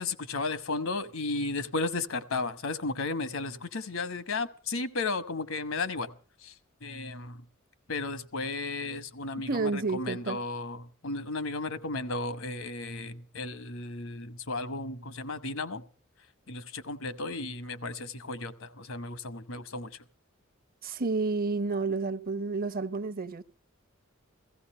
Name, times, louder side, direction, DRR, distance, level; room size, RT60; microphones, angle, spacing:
voice 1, 0.0-7.5 7.9-15.8 16.5-20.0, left 3 dB, 75° left, 1.2 m, -34 dB
voice 2, 9.5-10.4 20.8-23.4, right 3 dB, 45° right, 0.8 m, -30 dB
15.5 x 15.5 x 5.5 m
head